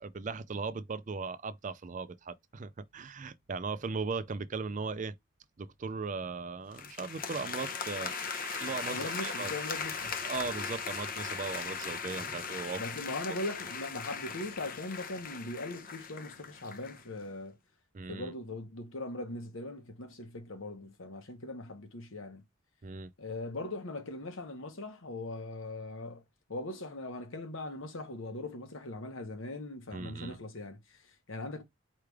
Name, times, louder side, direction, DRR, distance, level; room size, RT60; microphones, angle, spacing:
voice 1, 0.0-5.1 5.6-8.1 8.6-9.5 10.3-12.8 17.9-18.3 22.8-23.1 29.9-30.4, right 4 dB, 40° right, 0.4 m, -38 dB
sound 1, 6.7-17.0, left 6 dB, 45° left, 0.7 m, -39 dB
sound 2, 8.0-12.8, right 8 dB, 70° right, 1.0 m, -49 dB
voice 2, 8.9-10.2 12.8-17.6 18.1-22.4 23.2-26.2 26.5-31.6, left 2 dB, 75° left, 1.1 m, -40 dB
4.8 x 3.2 x 3.4 m
head